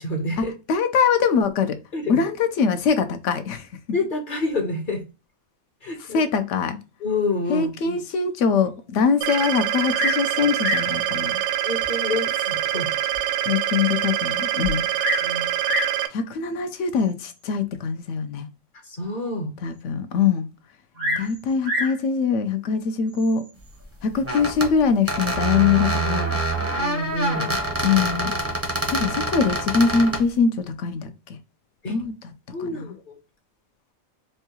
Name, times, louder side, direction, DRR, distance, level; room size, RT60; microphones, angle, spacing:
voice 1, 0.0-0.5 1.9-2.2 3.9-5.0 5.8-6.2 7.0-8.0 11.6-12.9 15.2-15.5 18.8-19.5 21.0-21.2 26.5-27.6 31.8-32.0 32.5-33.2, left 2 dB, 45° left, 0.9 m, -28 dB
voice 2, 0.7-1.8 2.1-3.7 6.1-6.8 7.5-11.4 13.5-14.9 16.1-18.5 19.6-20.5 21.2-23.4 24.0-26.4 27.8-28.3 28.9-31.4 31.9-32.2 32.6-32.9, left 6 dB, 70° left, 0.8 m, -23 dB
sound 1, 9.2-16.1, right 12 dB, 70° right, 0.8 m, -25 dB
Bird vocalization bird call bird song, 9.9-10.3 10.6-11.0 11.8-11.9 12.5-12.6 13.1-13.2 13.4-13.5 14.6-15.3 15.6-16.0 17.0-17.3 21.0-22.0 23.1-23.5, equal, 90° right, 1.7 m, -27 dB
sound 2, 24.2-24.7 25.1-30.2, right 2 dB, 15° right, 0.5 m, -26 dB
4.5 x 2.3 x 2.8 m
omnidirectional pair, 1.5 m